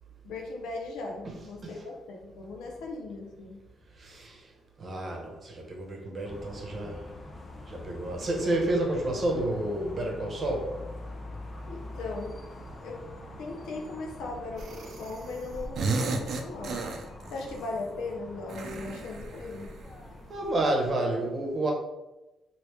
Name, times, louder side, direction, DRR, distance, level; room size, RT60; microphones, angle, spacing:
voice 1, 0.2-3.6 11.7-13.1 13.4-16.8 17.3-19.7, left 3 dB, 85° left, 1 dB, 0.7 m, -38 dB
voice 2, 4.0-4.5 4.8-7.1 7.7-10.8 20.3-21.7, right 1 dB, 45° right, 1 dB, 0.9 m, -30 dB
sound 1, 6.2-20.9, left 2 dB, 30° left, 0.5 m, -44 dB
sound 2, 14.6-15.3 15.5-17.5 18.5-20.0, right 3 dB, 65° right, 0.5 m, -33 dB
3.1 x 2.8 x 3.1 m, 1.0 s
cardioid pair, 90°, 0 cm